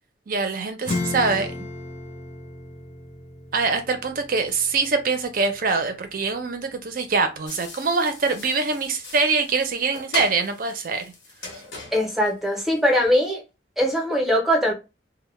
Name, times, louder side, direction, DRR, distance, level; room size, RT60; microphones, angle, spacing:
voice 1, 0.3-1.7 3.5-11.0, right 4 dB, 50° right, 0.5 m, -24 dB
Acoustic guitar / Strum, 0.9-6.9, left 3 dB, 40° left, 0.6 m, -35 dB
sound 1, 7.5-13.2, left 3 dB, 90° left, 0.9 m, -40 dB
voice 2, 11.9-13.4 13.8-14.7, equal, ahead, 0.6 m, -21 dB
2.2 x 2.1 x 3.0 m
head